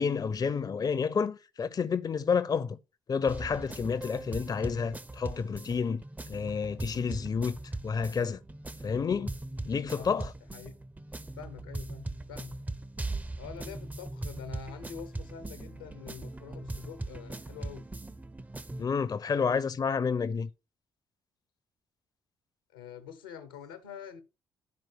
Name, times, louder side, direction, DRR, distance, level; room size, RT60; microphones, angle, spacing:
voice 1, 0.0-2.8 3.1-7.6 7.8-8.4 8.8-9.3 9.7-10.3 18.8-20.5, left 6 dB, 35° left, 0.7 m, -30 dB
sound 1, 3.3-18.9, right 2 dB, 15° right, 0.7 m, -40 dB
voice 2, 11.4-12.6 13.4-17.9 22.7-24.2, left 8 dB, 80° left, 1.2 m, -46 dB
12.0 x 4.6 x 4.7 m
figure-of-eight pair, 45°, 11 cm